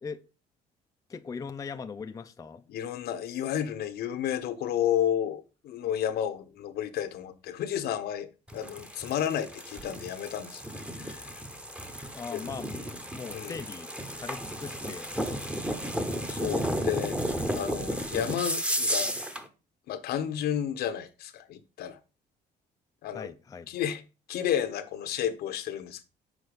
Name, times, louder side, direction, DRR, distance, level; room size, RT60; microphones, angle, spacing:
voice 1, 1.1-2.6 12.1-12.8 13.1-13.9 14.2-16.0 23.1-23.7, left 5 dB, 20° left, 0.4 m, -40 dB
voice 2, 2.7-8.3 8.5-11.3 12.3-12.4 13.3-13.6 16.3-17.2 17.5-19.1 19.9-22.0 23.0-23.3 23.7-24.0 24.3-26.0, left 10 dB, 70° left, 0.9 m, -31 dB
sound 1, 8.5-19.5, equal, 5° right, 0.9 m, -33 dB
6.2 x 4.5 x 5.0 m
cardioid pair, 110°, 17 cm